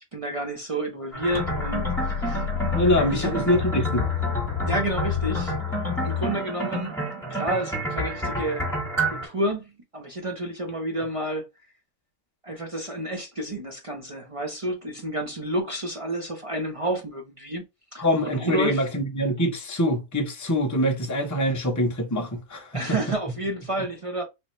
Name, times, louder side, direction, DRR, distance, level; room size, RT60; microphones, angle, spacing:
voice 1, 0.1-2.5 3.1-3.4 4.6-5.6 6.0-8.6 9.1-11.5 12.4-17.6 17.9-18.9 22.7-24.2, right 1 dB, 45° right, 0.4 m, -30 dB
sound 1, 1.1-9.3, right 1 dB, ahead, 1.5 m, -30 dB
sound 2, 1.3-6.3, left 9 dB, 75° left, 1.0 m, -29 dB
voice 2, 2.7-4.1 18.0-22.7, equal, 25° left, 0.3 m, -24 dB
3.5 x 2.7 x 3.0 m
omnidirectional pair, 1.6 m